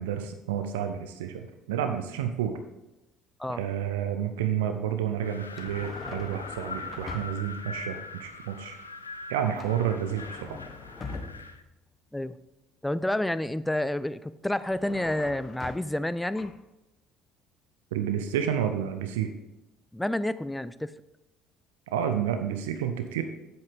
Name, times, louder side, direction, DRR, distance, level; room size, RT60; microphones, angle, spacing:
voice 1, 0.0-2.6 3.5-8.8 9.3-10.6 17.9-19.3 21.9-23.2, right 9 dB, 70° right, 7 dB, 0.6 m, -30 dB
Wind, 5.2-11.6, left 3 dB, 85° left, 0.4 m, -42 dB
sound 1, 5.5-7.6 9.6-11.7 14.6-16.1 16.3-16.6, left 3 dB, 30° left, 1.1 m, -42 dB
voice 2, 12.8-16.5 19.9-20.9, left 1 dB, 5° left, 15 dB, 0.4 m, -29 dB
8.1 x 7.7 x 3.5 m, 0.96 s
figure-of-eight pair, 55°, 0 cm